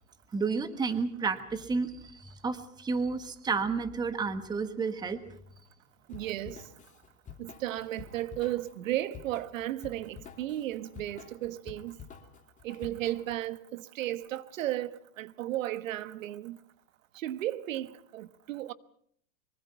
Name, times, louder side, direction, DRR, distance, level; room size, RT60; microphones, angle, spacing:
voice 1, 0.3-5.2, right 4 dB, 10° right, 1.4 m, -31 dB
Drum kit / Drum, 6.1-13.4, left 7 dB, 20° left, 2.7 m, -49 dB
voice 2, 6.1-6.6 7.4-12.0 12.6-16.6 17.1-18.7, right 14 dB, 65° right, 1.3 m, -34 dB
24.5 x 24.0 x 5.7 m
supercardioid pair, 150°, 42 cm